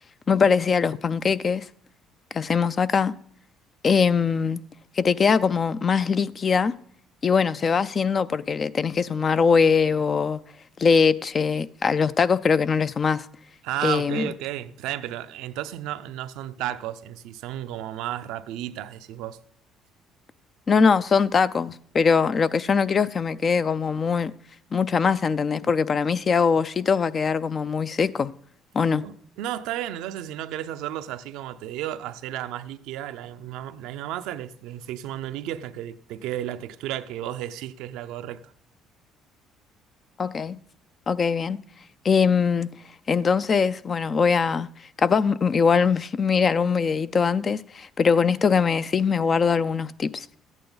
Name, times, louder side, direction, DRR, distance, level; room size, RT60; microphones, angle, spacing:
voice 1, 0.3-1.7 2.3-3.1 3.8-4.6 5.0-6.7 7.2-10.4 10.8-13.3 13.8-14.3 20.7-24.3 24.7-28.3 28.7-29.0 40.2-40.6 41.1-41.6 42.0-42.8 43.1-44.7 45.0-50.4, left 5 dB, 40° left, 0.4 m, -22 dB
voice 2, 13.6-19.4 29.0-38.5, right 12 dB, 80° right, 0.5 m, -33 dB
13.5 x 9.0 x 4.0 m
supercardioid pair, 75°, 0 cm